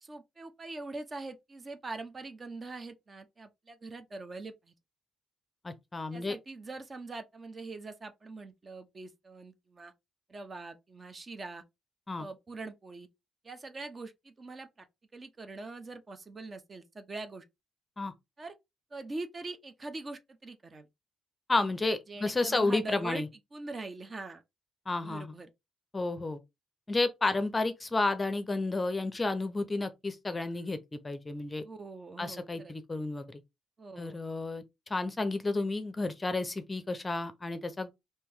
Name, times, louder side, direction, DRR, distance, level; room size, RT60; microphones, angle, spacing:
voice 1, 0.0-4.7 6.1-9.9 10.3-11.6 12.2-13.1 13.4-14.7 15.1-17.4 18.4-18.5 18.9-20.9 22.1-23.2 23.5-24.4 25.0-25.5 31.6-32.7 33.8-34.2, right 3 dB, 30° right, 0.6 m, -43 dB
voice 2, 5.6-6.4 12.1-12.3 18.0-18.1 21.5-23.3 24.9-25.3 25.9-26.4 26.9-31.6 32.2-33.4 34.0-34.6 34.9-37.9, left 2 dB, 20° left, 0.6 m, -31 dB
3.0 x 2.7 x 3.5 m
cardioid pair, 90°, 0 cm